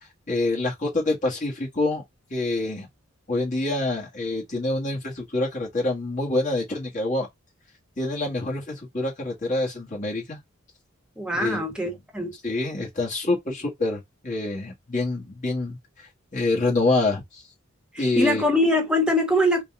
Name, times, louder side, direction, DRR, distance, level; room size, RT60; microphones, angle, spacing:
voice 1, 0.3-2.0 2.3-2.9 3.3-7.3 8.0-10.4 11.3-12.0 12.4-15.8 16.3-17.4 18.0-18.4, left 2 dB, 40° left, 1.6 m, -26 dB
voice 2, 11.2-12.3 17.9-19.6, left 1 dB, 5° right, 1.1 m, -23 dB
3.9 x 2.4 x 3.6 m
head